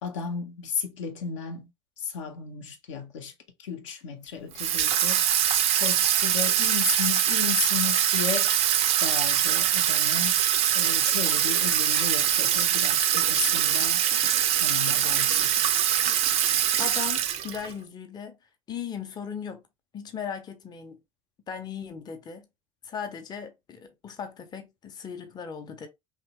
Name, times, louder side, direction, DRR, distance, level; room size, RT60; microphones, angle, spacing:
voice 1, 0.0-1.7 2.0-3.3 3.6-5.2 5.8-8.5 9.0-10.4 10.7-14.0 14.5-15.6, left 7 dB, 65° left, 0.6 m, -34 dB
Water tap faucet / Sink (filling or washing), 4.6-17.7, right 10 dB, 40° right, 0.4 m, -23 dB
voice 2, 16.8-18.4 18.7-19.6 19.9-21.0 21.5-22.5 22.8-25.9, left 7 dB, 25° left, 0.5 m, -37 dB
2.9 x 2.0 x 2.9 m
figure-of-eight pair, 65°, 17 cm